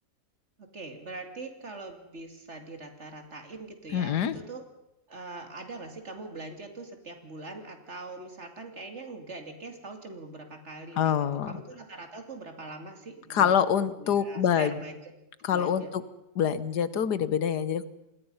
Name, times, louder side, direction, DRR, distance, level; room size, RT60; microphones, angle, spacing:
voice 1, 0.6-4.6 5.1-11.2 11.5-15.1 15.5-15.9, right 2 dB, 40° right, 6 dB, 2.9 m, -42 dB
voice 2, 3.9-4.4 11.0-11.5 13.3-14.7 15.4-16.0 16.3-17.8, left 8 dB, 75° left, 15 dB, 1.6 m, -25 dB
27.5 x 20.0 x 5.5 m, 0.90 s
omnidirectional pair, 1.8 m